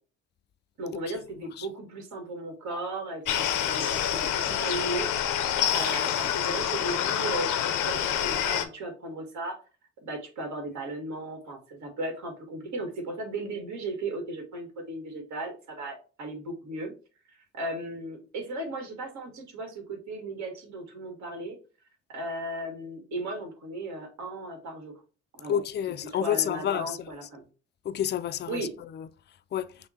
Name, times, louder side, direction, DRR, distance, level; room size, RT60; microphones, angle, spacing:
voice 1, 0.8-5.1 5.4-9.6 10.0-16.9 17.5-21.6 22.1-25.0 25.3-25.6 26.0-27.4 28.5-28.7, right 2 dB, 70° right, 1.7 m, -36 dB
sound 1, 3.2-8.6, left 9 dB, 85° left, 0.7 m, -27 dB
voice 2, 25.5-27.0 27.9-28.7 29.0-29.1 29.5-29.7, left 9 dB, 35° left, 0.4 m, -29 dB
5.6 x 2.2 x 4.2 m
cardioid pair, 90°, 30 cm